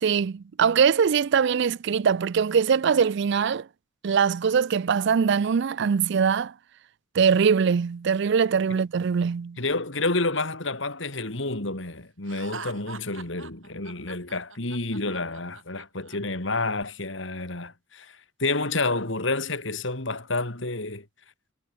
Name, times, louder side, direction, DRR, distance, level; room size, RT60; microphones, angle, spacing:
voice 1, 0.0-3.7 4.0-6.5 7.1-9.6, right 6 dB, 60° right, 0.4 m, -22 dB
voice 2, 9.6-21.0, left 3 dB, 65° left, 3.2 m, -29 dB
Laughter, 12.3-16.2, right 5 dB, 75° right, 6.4 m, -42 dB
head